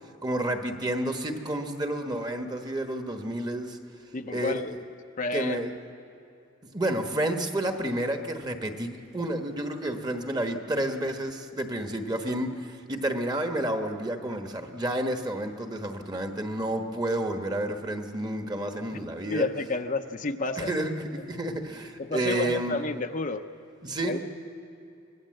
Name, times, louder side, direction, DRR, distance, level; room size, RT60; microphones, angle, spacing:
voice 1, 0.2-3.8 4.3-4.7 5.3-5.7 6.7-19.5 20.6-22.7 23.8-24.2, right 1 dB, 20° right, 5 dB, 1.3 m, -30 dB
voice 2, 4.1-4.7 5.2-5.6 19.3-20.7 22.0-23.4 24.1-24.2, left 3 dB, 40° left, 6 dB, 0.7 m, -30 dB
24.5 x 19.0 x 7.8 m, 2.7 s
head